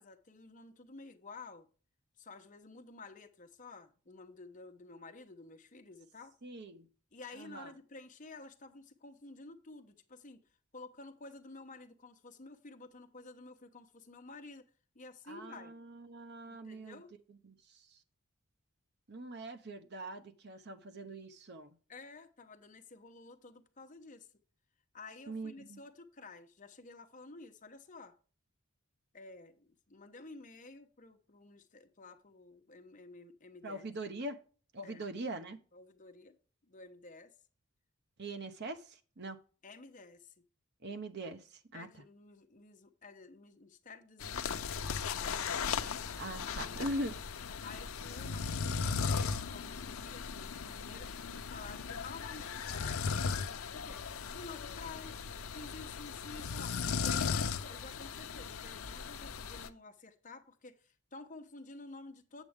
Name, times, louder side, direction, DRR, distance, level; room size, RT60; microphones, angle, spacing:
voice 1, 0.0-1.7 2.2-6.3 7.1-10.4 10.7-14.6 14.9-15.7 16.5-17.1 21.9-24.3 24.9-28.1 29.1-33.8 34.8-35.1 35.7-36.4 36.6-37.3 39.6-40.3 41.7-45.9 46.4-46.9 47.6-62.4, left 3 dB, 40° left, 1.0 m, -52 dB
voice 2, 6.4-6.9 7.4-7.7 15.3-17.0 17.4-17.8 19.1-21.7 25.3-25.8 33.6-34.4 34.7-35.6 38.2-39.4 40.8-41.9 46.2-47.1, right 1 dB, 55° right, 0.9 m, -42 dB
sound 1, 44.2-59.7, left 5 dB, 80° left, 0.6 m, -37 dB
8.2 x 7.6 x 3.6 m
head